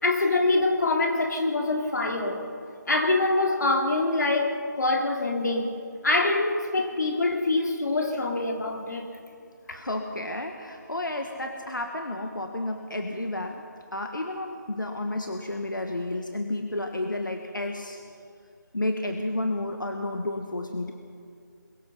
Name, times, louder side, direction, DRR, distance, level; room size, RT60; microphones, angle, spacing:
voice 1, 0.0-2.5 2.9-9.1 9.7-9.8, left 2 dB, 65° left, 2 dB, 3.1 m, -25 dB
voice 2, 9.7-13.6 13.9-18.0 18.7-20.9, left 1 dB, 90° left, 4 dB, 1.6 m, -31 dB
23.0 x 21.0 x 5.6 m, 2.5 s
figure-of-eight pair, 160°, 10 cm